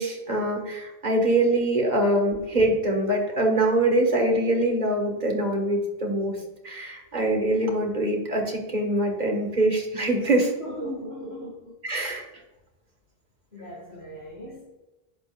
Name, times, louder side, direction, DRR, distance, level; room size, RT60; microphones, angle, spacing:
voice 1, 0.0-6.4 6.6-10.5 11.8-12.2, right 1 dB, 45° right, 1 dB, 2.0 m, -24 dB
voice 2, 10.6-11.8 13.5-14.7, equal, 80° left, -5 dB, 2.5 m, -37 dB
11.0 x 8.2 x 2.6 m, 1.1 s
omnidirectional pair, 1.1 m